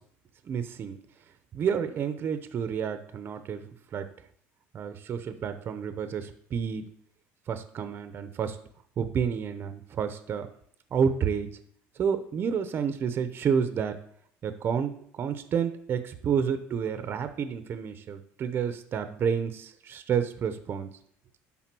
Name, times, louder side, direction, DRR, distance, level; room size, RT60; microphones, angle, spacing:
voice 1, 0.5-1.0 1.5-4.1 4.7-6.8 7.5-8.6 9.0-10.5 10.9-11.5 12.0-14.0 14.4-20.9, right 7 dB, 40° right, 10 dB, 0.7 m, -30 dB
10.5 x 3.7 x 6.1 m, 0.64 s
cardioid pair, 130°, 6 cm